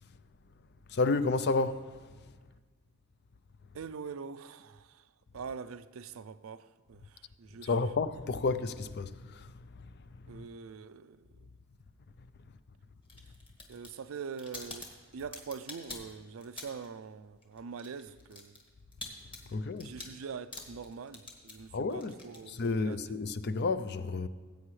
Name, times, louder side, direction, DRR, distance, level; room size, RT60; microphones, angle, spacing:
voice 1, 0.9-2.1 7.6-9.5 10.3-10.4 19.5-19.9 21.7-22.1 22.5-24.3, left 3 dB, 50° left, 0.5 m, -31 dB
voice 2, 3.7-5.0 5.3-7.7 10.3-11.5 13.7-18.6 19.8-23.2, right 6 dB, 70° right, 0.4 m, -44 dB
sound 1, 13.0-17.0 17.2-23.1, left 2 dB, 25° left, 1.7 m, -47 dB
19.0 x 8.4 x 3.2 m
head